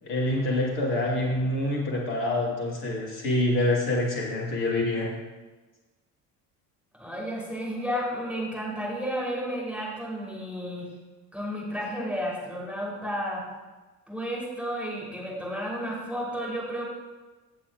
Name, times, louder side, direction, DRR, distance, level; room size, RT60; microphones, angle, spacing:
voice 1, 0.0-5.1, left 1 dB, 60° left, -2 dB, 1.8 m, -26 dB
voice 2, 7.0-10.9 11.3-13.4 14.1-16.8, equal, ahead, -5 dB, 3.4 m, -32 dB
15.5 x 7.6 x 2.4 m, 1.2 s
figure-of-eight pair, 60°, 47 cm